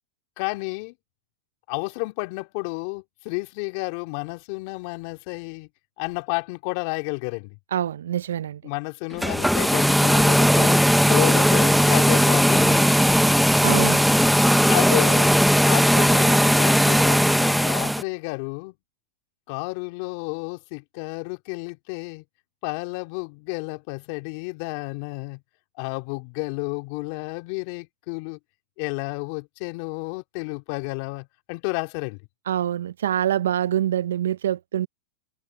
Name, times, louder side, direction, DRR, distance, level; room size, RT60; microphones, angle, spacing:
voice 1, 0.4-0.9 1.7-5.7 6.0-7.6 8.6-10.8 11.1-12.9 14.6-15.3 15.6-18.7 19.5-22.2 22.6-25.4 25.8-28.4 28.8-32.2, left 28 dB, 55° left, 2.5 m, -31 dB
voice 2, 7.7-8.6 13.6-14.0 32.5-34.9, right 11 dB, 80° right, 0.7 m, -25 dB
sound 1, 9.1-18.0, equal, ahead, 1.0 m, -18 dB
hypercardioid pair, 110°, 0 cm